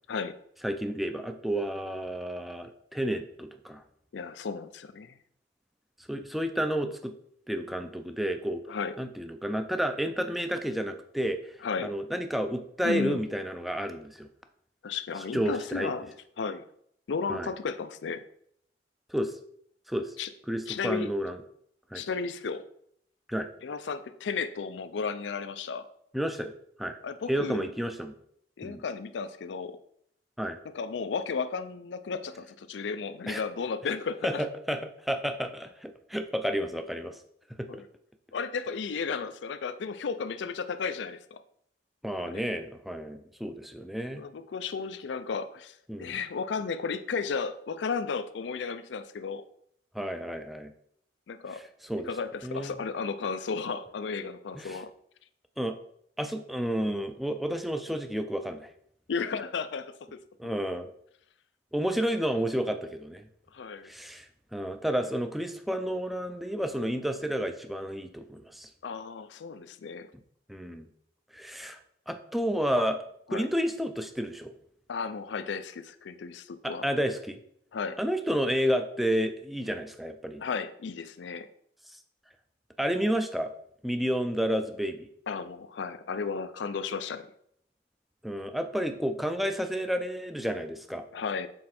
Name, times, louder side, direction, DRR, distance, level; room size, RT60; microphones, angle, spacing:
voice 1, 0.6-3.8 6.1-7.1 7.5-8.6 9.0-11.6 11.8-14.3 15.3-15.9 17.3-17.5 19.1-19.3 19.9-20.2 20.5-21.4 21.9-22.0 23.3-23.5 26.1-26.5 26.8-27.0 27.3-28.1 28.6-28.8 30.4-30.6 33.3-33.4 34.2-37.2 37.6-37.8 42.0-44.2 45.9-46.2 49.9-50.7 51.5-52.1 52.4-52.8 54.5-54.8 55.6-55.7 56.2-58.7 60.4-60.9 61.7-63.3 63.8-64.3 64.5-68.7 70.5-70.9 71.3-71.8 72.1-73.0 73.3-74.5 76.6-77.4 78.0-80.4 81.9-82.0 82.8-83.5 83.8-85.1 88.2-91.0, equal, ahead, 7 dB, 0.4 m, -31 dB
voice 2, 4.1-5.2 8.7-8.9 11.6-11.9 12.8-13.2 14.8-16.1 16.4-16.6 17.1-18.2 20.2-20.3 20.7-21.1 21.9-22.6 23.6-25.9 27.0-27.7 28.6-29.8 30.7-34.4 37.7-37.8 38.3-41.4 42.2-42.4 44.2-49.4 51.3-51.6 52.0-54.9 59.1-60.2 63.5-63.9 68.8-70.1 73.3-73.5 74.9-76.9 77.7-78.0 80.4-81.5 85.3-87.3 91.1-91.5, left 5 dB, 85° left, 12 dB, 0.4 m, -34 dB
6.4 x 4.2 x 4.2 m, 0.69 s
head